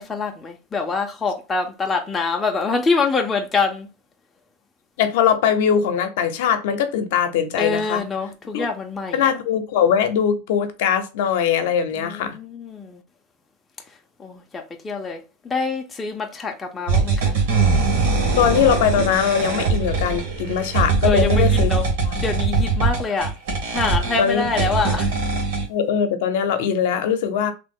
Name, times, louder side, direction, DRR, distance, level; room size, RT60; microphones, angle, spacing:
voice 1, 0.0-3.9 7.6-9.3 12.0-13.0 14.2-17.3 21.0-21.8 22.2-23.3 23.7-25.1, left 4 dB, 10° left, 0.4 m, -25 dB
voice 2, 5.0-8.0 8.5-8.7 9.1-12.4 18.4-21.7 22.0-22.1 24.2-24.5 25.7-27.5, left 8 dB, 70° left, 0.6 m, -21 dB
sound 1, 16.9-25.7, right 4 dB, 70° right, 1.2 m, -21 dB
3.0 x 2.0 x 3.5 m
supercardioid pair, 165°, 0 cm